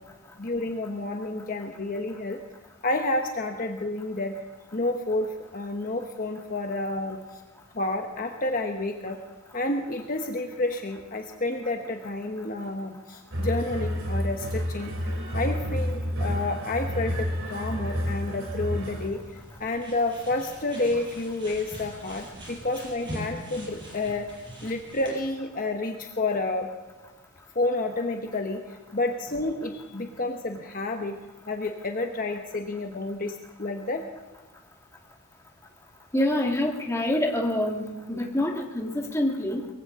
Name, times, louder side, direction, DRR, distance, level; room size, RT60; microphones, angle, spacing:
voice 1, 0.4-2.4 2.8-4.3 4.7-7.2 7.7-9.2 9.5-14.9 15.3-19.2 19.6-24.3 24.6-26.7 27.5-28.6 28.9-31.2 31.5-34.0, left 2 dB, 40° left, 3 dB, 1.1 m, -30 dB
sound 1, 13.3-19.1, equal, 65° right, 3.1 m, -30 dB
sound 2, 18.7-25.1, equal, 20° right, 5.0 m, -43 dB
voice 2, 36.1-39.7, left 1 dB, 15° left, 1 dB, 1.7 m, -26 dB
22.0 x 16.0 x 3.7 m, 1.3 s
head